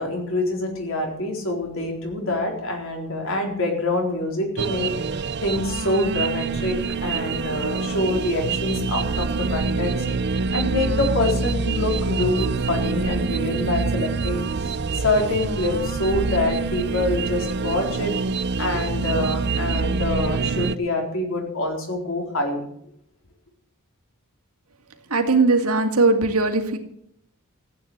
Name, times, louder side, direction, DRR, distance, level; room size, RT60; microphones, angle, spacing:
voice 1, 0.0-4.9 5.4-9.9 10.3-18.1 18.6-22.6, left 2 dB, 60° left, 2 dB, 4.1 m, -25 dB
sound 1, 4.6-20.8, right 4 dB, 50° right, 0.6 m, -26 dB
voice 2, 25.1-26.8, right 3 dB, 75° right, 5 dB, 2.2 m, -19 dB
15.0 x 9.1 x 8.0 m, 0.71 s
head